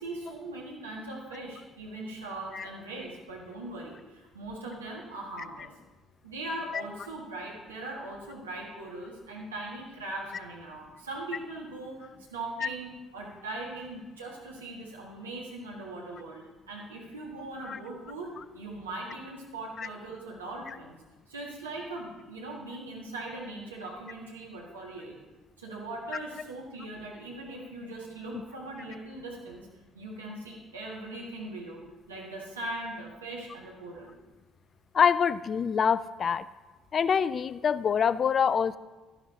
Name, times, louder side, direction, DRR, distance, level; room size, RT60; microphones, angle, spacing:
voice 1, 0.0-5.7 6.2-21.0 21.3-25.2 25.6-29.7 29.9-31.8 32.1-34.1, right 2 dB, 80° right, -3 dB, 1.7 m, -40 dB
voice 2, 34.9-36.5 36.9-38.8, left 7 dB, 40° left, 17 dB, 0.3 m, -25 dB
11.5 x 10.5 x 2.8 m, 1.2 s
figure-of-eight pair, 50°, 0 cm